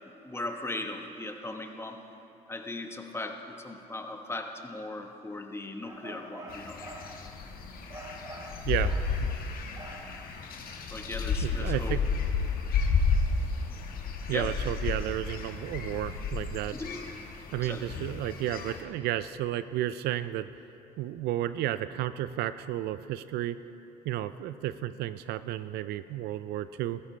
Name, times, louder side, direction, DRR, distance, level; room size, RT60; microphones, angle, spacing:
voice 1, 0.0-2.0 2.5-6.8 10.9-12.0 14.3-14.5 16.7-17.0 17.6-17.9, left 2 dB, 15° left, 4 dB, 1.2 m, -38 dB
sound 1, 5.8-7.2 7.9-9.2 9.8-10.2, right 1 dB, 20° right, 1.5 m, -45 dB
sound 2, 6.5-18.8, left 4 dB, 55° left, 1.4 m, -32 dB
voice 2, 11.4-12.0 14.3-16.8 17.5-20.5 21.0-23.6 24.1-27.0, right 13 dB, 70° right, 14 dB, 0.4 m, -32 dB
14.5 x 13.5 x 3.2 m, 2.9 s
supercardioid pair, 75°, 17 cm